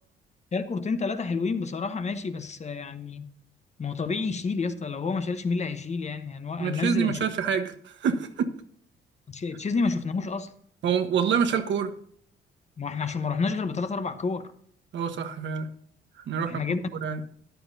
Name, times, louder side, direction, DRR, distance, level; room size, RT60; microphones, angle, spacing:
voice 1, 0.5-3.2 3.8-7.2 9.3-10.5 12.8-14.5 16.5-16.9, left 4 dB, 35° left, 1.0 m, -29 dB
voice 2, 6.6-8.5 10.8-11.9 14.9-15.7 16.3-16.6 17.0-17.2, right 7 dB, 65° right, 1.3 m, -26 dB
14.0 x 10.5 x 2.7 m
cardioid pair, 90°, 20 cm